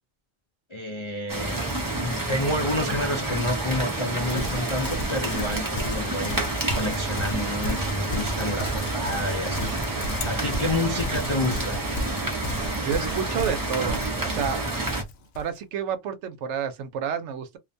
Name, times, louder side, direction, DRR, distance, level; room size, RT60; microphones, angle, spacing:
voice 1, 0.7-1.6 2.0-6.5 6.7-9.7 10.2-11.8, left 1 dB, 50° left, 0.3 m, -29 dB
sound 1, 1.3-15.0, right 2 dB, 25° right, 0.5 m, -29 dB
Livestock farm animals working animals, 4.3-15.5, left 1 dB, 65° left, 0.7 m, -35 dB
voice 2, 12.8-14.6 15.4-17.6, right 8 dB, 80° right, 0.9 m, -30 dB
2.5 x 2.2 x 2.5 m
omnidirectional pair, 1.2 m